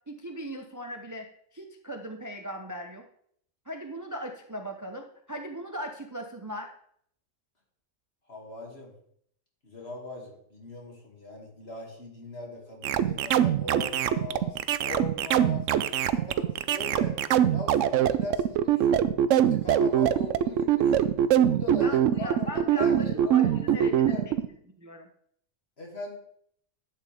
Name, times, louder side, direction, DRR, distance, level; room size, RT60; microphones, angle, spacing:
voice 1, 0.1-1.3 1.5-3.0 3.7-6.7 21.8-24.4 24.8-25.1, equal, 20° right, 4 dB, 0.6 m, -38 dB
voice 2, 8.3-8.9 9.6-17.2 17.5-21.1 21.4-24.2 25.8-26.2, left 2 dB, 50° left, -1 dB, 2.7 m, -40 dB
sound 1, 12.8-24.5, right 10 dB, 75° right, 0.9 m, -23 dB
11.5 x 8.5 x 3.5 m, 0.66 s
omnidirectional pair, 1.3 m